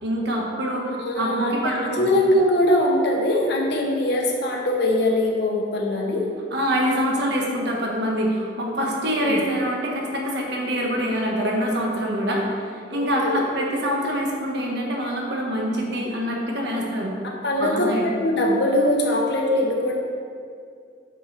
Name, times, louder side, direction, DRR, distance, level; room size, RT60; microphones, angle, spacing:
voice 1, 0.0-2.1 6.5-17.1 17.6-18.1, equal, 65° right, -1 dB, 1.5 m, -25 dB
voice 2, 1.0-6.2 9.2-9.4 12.9-13.4 17.4-20.0, left 1 dB, 65° left, 0 dB, 1.3 m, -22 dB
9.1 x 5.5 x 4.3 m, 2.3 s
head